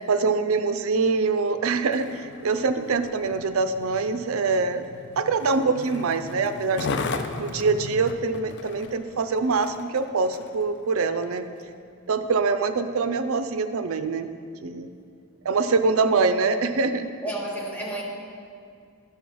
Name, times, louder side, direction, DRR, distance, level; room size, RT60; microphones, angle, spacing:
voice 1, 0.1-4.8 5.2-7.1 7.4-11.5 12.1-14.3 14.6-14.9 15.4-17.1, right 4 dB, 70° right, 10 dB, 0.5 m, -24 dB
Skateboard, 1.8-10.6 11.2-11.4, left 3 dB, 50° left, 0.4 m, -36 dB
voice 2, 17.2-18.0, right 1 dB, 5° left, -3 dB, 1.1 m, -31 dB
11.5 x 5.6 x 4.7 m, 2.3 s
head